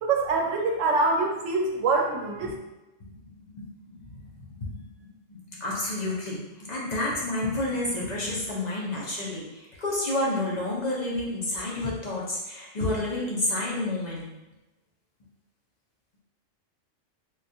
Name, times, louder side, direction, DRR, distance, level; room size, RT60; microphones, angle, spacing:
voice 1, 0.0-2.6, right 3 dB, 85° right, 1 dB, 0.9 m, -25 dB
voice 2, 3.9-4.3 4.6-14.3, left 2 dB, 45° left, -4 dB, 0.6 m, -30 dB
3.7 x 2.3 x 2.6 m, 1.0 s
omnidirectional pair, 1.3 m